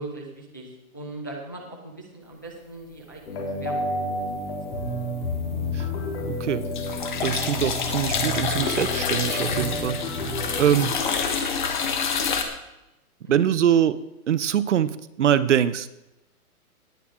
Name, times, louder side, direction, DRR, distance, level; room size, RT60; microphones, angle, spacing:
voice 1, 0.0-3.9 4.4-4.8 10.0-10.3 13.2-13.4, right 2 dB, 15° left, -1 dB, 0.5 m, -40 dB
sound 1, 3.3-10.8, left 1 dB, 45° left, 3.6 m, -30 dB
sound 2, 4.3-4.9 5.2-12.4, left 6 dB, 30° left, 1.1 m, -28 dB
voice 2, 6.3-6.7 7.2-10.0 10.6-10.9 13.3-14.0 14.3-15.9, right 9 dB, 55° right, 15 dB, 0.6 m, -23 dB
18.5 x 8.7 x 3.6 m, 0.92 s
hypercardioid pair, 175°, 45 cm